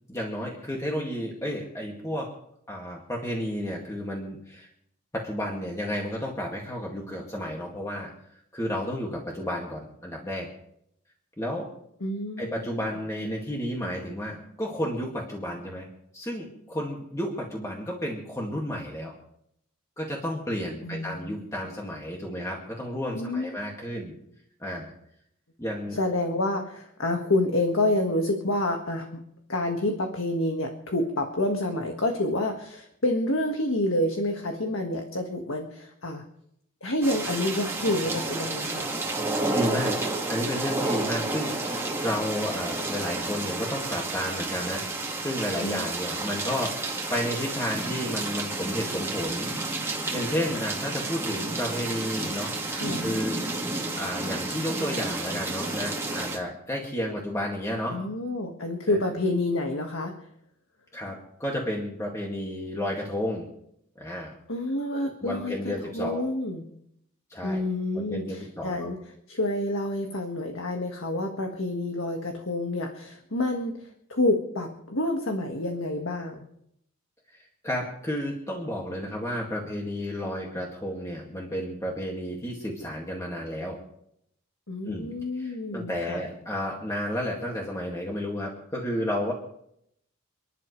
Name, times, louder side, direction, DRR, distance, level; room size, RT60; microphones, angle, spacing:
voice 1, 0.1-2.3 2.7-4.7 5.1-8.1 8.5-10.5 11.4-11.7 12.4-15.9 16.1-19.1 20.0-24.1 24.6-24.9 25.6-26.0 39.5-39.9 40.3-44.9 45.2-49.5 50.1-52.5 53.0-53.4 54.0-58.0 58.9-59.0 60.9-63.4 64.0-64.4 64.9-66.3 67.3-67.6 67.9-68.9 77.3-77.4 77.6-83.8 84.9-89.3, equal, 15° left, -2 dB, 2.1 m, -32 dB
voice 2, 12.0-12.6 20.8-21.4 23.1-23.5 25.9-29.2 29.5-36.2 36.8-38.8 45.6-45.9 52.7-53.1 57.9-60.1 64.5-66.6 67.4-69.0 69.3-76.4 84.7-86.2, left 1 dB, 70° left, 3 dB, 1.7 m, -28 dB
sound 1, 37.0-56.4, right 2 dB, 10° right, 2.0 m, -31 dB
29.0 x 11.0 x 3.2 m, 0.74 s
head